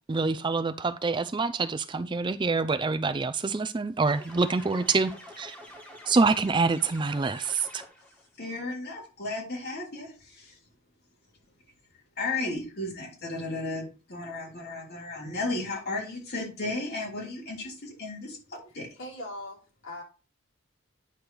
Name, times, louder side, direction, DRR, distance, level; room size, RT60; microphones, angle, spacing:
voice 1, 0.1-5.6 6.1-7.8, right 4 dB, 25° right, 0.4 m, -26 dB
sound 1, 4.1-8.2, left 1 dB, 10° left, 1.6 m, -47 dB
voice 2, 8.4-10.5 12.2-18.9, left 2 dB, 50° left, 3.1 m, -34 dB
voice 3, 19.0-20.0, left 1 dB, 70° left, 3.6 m, -40 dB
9.6 x 3.3 x 6.0 m
head